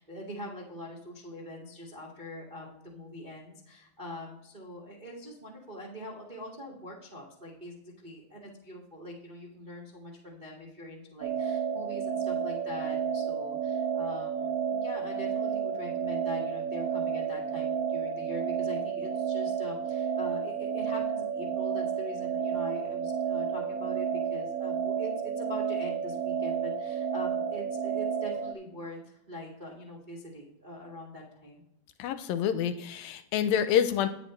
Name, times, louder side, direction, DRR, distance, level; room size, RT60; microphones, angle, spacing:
voice 1, 0.0-31.6, equal, 35° right, -3 dB, 0.7 m, -43 dB
sound 1, 11.2-28.5, right 7 dB, 75° right, 2.2 m, -31 dB
voice 2, 32.0-34.1, left 9 dB, 80° left, 11 dB, 2.2 m, -27 dB
10.5 x 9.9 x 3.1 m, 0.84 s
omnidirectional pair, 4.2 m